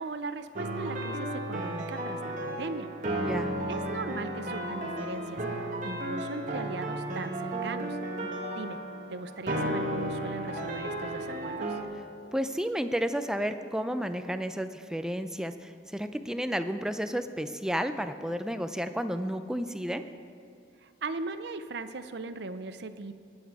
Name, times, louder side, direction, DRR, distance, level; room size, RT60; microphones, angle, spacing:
voice 1, 0.0-2.9 3.7-8.0 8.5-8.8 9.1-11.8 20.8-23.1, right 3 dB, 70° right, 10 dB, 0.6 m, -38 dB
sound 1, 0.5-11.8, right 1 dB, 40° right, 1.3 m, -34 dB
voice 2, 3.2-3.5 8.2-8.4 8.7-8.8 12.3-20.0, equal, 5° right, 9 dB, 0.4 m, -32 dB
20.0 x 8.1 x 4.8 m, 2.5 s
head